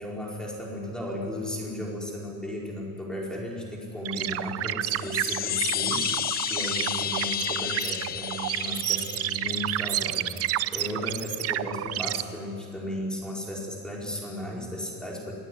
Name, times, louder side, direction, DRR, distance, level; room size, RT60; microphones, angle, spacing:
voice 1, 0.0-15.3, left 1 dB, ahead, -3 dB, 4.7 m, -35 dB
sound 1, 4.0-12.2, right 13 dB, 45° right, 0.7 m, -30 dB
sound 2, 4.9-9.9, left 10 dB, 30° left, 0.5 m, -31 dB
27.0 x 19.0 x 9.8 m, 2.3 s
cardioid pair, 180°, 33 cm